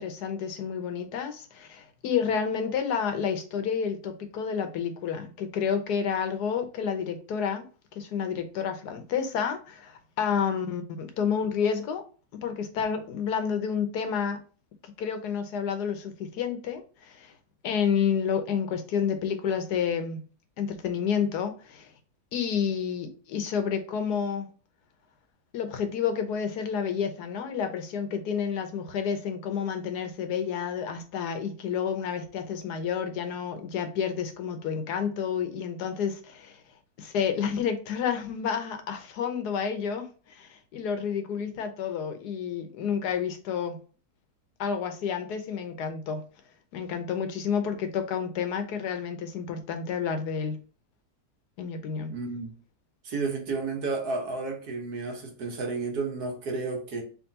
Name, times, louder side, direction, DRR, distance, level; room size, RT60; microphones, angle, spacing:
voice 1, 0.0-7.7 7.9-12.0 12.3-14.4 15.0-17.3 17.6-20.2 20.6-21.9 22.3-24.5 25.5-36.6 37.0-43.8 44.6-46.2 46.7-50.5 51.6-52.1, left 7 dB, 80° left, 1.4 m, -30 dB
voice 2, 52.1-52.5 53.0-57.0, right 4 dB, 70° right, 1.7 m, -32 dB
3.6 x 3.3 x 4.0 m
omnidirectional pair, 1.7 m